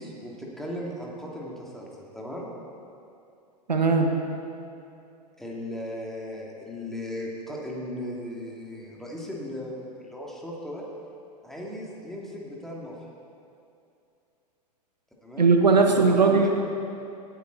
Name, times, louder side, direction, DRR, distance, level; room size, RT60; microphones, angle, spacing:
voice 1, 0.0-2.5 5.4-10.8 11.4-12.9 15.2-15.5 15.8-16.5, left 1 dB, ahead, -4 dB, 2.5 m, -37 dB
voice 2, 3.7-4.1 15.4-16.5, right 4 dB, 90° right, 4 dB, 1.2 m, -19 dB
17.5 x 9.1 x 4.1 m, 2.6 s
hypercardioid pair, 95°, 21 cm